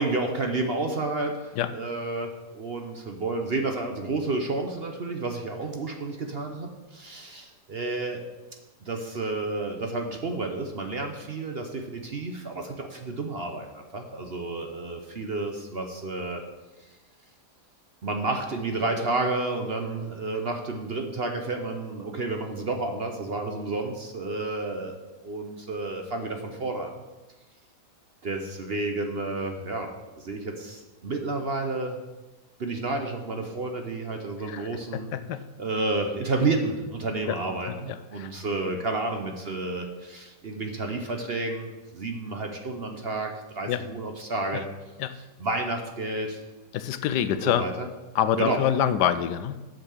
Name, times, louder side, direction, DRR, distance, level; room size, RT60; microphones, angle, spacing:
voice 1, 0.0-8.2 8.8-16.4 18.0-25.0 25.2-27.0 28.2-29.9 30.2-32.0 32.6-35.1 35.6-44.6 45.4-46.4 47.3-47.9 48.3-48.7, right 2 dB, 45° right, 4 dB, 0.9 m, -30 dB
voice 2, 34.5-35.4 37.3-37.4 37.7-37.8 38.2-38.3 43.7-43.8 44.5-44.6 45.0-45.1 46.7-47.6 48.1-49.6, left 10 dB, 85° left, 13 dB, 1.2 m, -26 dB
8.6 x 6.6 x 6.4 m, 1.1 s
omnidirectional pair, 1.8 m